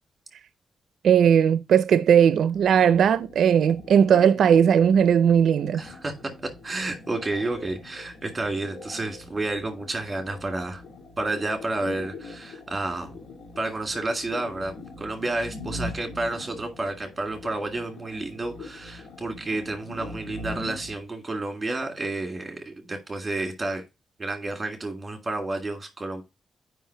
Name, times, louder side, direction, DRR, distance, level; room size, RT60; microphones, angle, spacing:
voice 1, 1.0-5.8, right 8 dB, 80° right, 0.4 m, -18 dB
drone waterpiperidoo, 2.5-20.9, left 2 dB, 80° left, 2.0 m, -42 dB
voice 2, 5.7-6.1 6.6-10.8 11.2-13.2 13.6-14.7 15.0-23.8 24.2-26.2, right 2 dB, 15° right, 1.9 m, -30 dB
7.4 x 5.2 x 4.3 m
wide cardioid pair, 160°, 0 cm